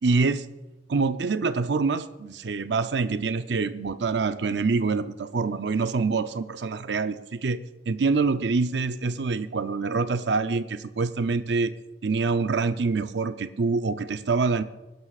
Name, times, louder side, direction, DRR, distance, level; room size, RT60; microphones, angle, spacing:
voice 1, 0.0-0.5 0.9-7.6 7.9-11.7 12.0-14.6, right 4 dB, 70° right, 11 dB, 0.6 m, -25 dB
24.5 x 11.0 x 2.5 m, 1.1 s
head